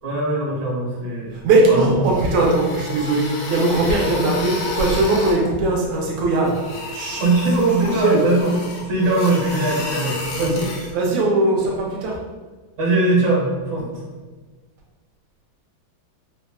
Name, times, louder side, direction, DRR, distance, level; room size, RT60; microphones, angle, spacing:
voice 1, 0.0-1.4 1.7-1.8 7.2-10.5 12.8-14.0, right 2 dB, 60° right, -6 dB, 1.3 m, -21 dB
voice 2, 1.3-6.5 6.9-7.2 7.8-8.2 10.4-12.2, right 2 dB, 75° right, -2 dB, 1.2 m, -19 dB
sound 1, 1.9-5.4 6.4-10.9, left 3 dB, 75° left, 1.3 m, -31 dB
3.4 x 2.0 x 2.3 m, 1.3 s
omnidirectional pair, 2.3 m